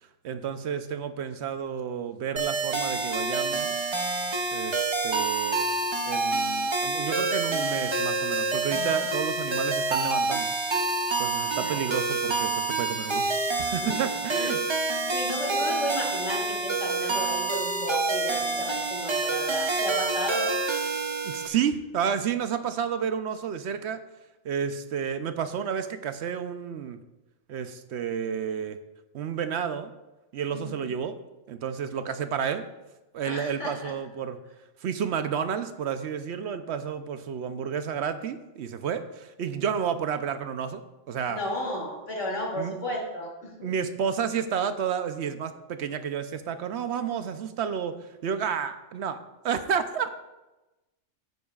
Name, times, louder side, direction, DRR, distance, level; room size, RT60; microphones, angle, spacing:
voice 1, 0.2-3.8 4.5-5.7 6.1-10.5 11.2-14.6 15.6-15.7 21.2-24.0 24.4-27.0 27.5-28.8 29.1-29.9 30.3-31.2 31.5-32.7 33.1-34.4 34.8-40.8 41.1-41.4 42.6-42.8 43.6-49.2 49.4-50.1, right 7 dB, 70° right, 10 dB, 0.9 m, -31 dB
sound 1, 2.4-21.5, right 3 dB, 30° right, 0.6 m, -27 dB
voice 2, 15.1-20.5 30.5-30.9 33.2-33.9 41.3-43.7, left 1 dB, 75° left, -2 dB, 2.8 m, -33 dB
12.5 x 9.4 x 2.4 m, 1.0 s
omnidirectional pair, 1.3 m